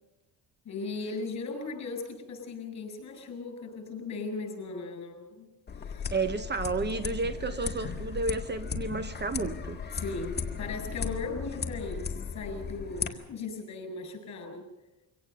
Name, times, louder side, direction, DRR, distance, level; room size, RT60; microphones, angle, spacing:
voice 1, 0.6-5.5 5.9-6.1 9.9-14.7, left 3 dB, 50° left, 7.9 m, -37 dB
sound 1, 5.7-13.1, left 6 dB, 30° left, 1.8 m, -36 dB
voice 2, 6.1-9.8, right 3 dB, 30° right, 1.1 m, -31 dB
24.5 x 17.5 x 6.9 m
cardioid pair, 125°, 35 cm